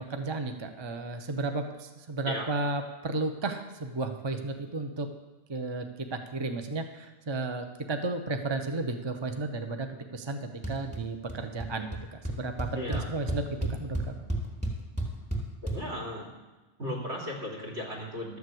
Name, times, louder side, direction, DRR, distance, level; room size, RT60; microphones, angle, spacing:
voice 1, 0.0-5.1 5.5-9.9 10.1-14.0, right 3 dB, 25° right, 6 dB, 0.7 m, -33 dB
sound 1, 10.6-11.0 11.3-11.7 11.9-12.0 12.2-15.8, right 1 dB, 5° right, 2.6 m, -31 dB
voice 2, 15.6-16.3 16.8-18.4, left 1 dB, 65° right, -1 dB, 3.4 m, -36 dB
12.5 x 7.2 x 7.9 m, 1.2 s
omnidirectional pair, 1.2 m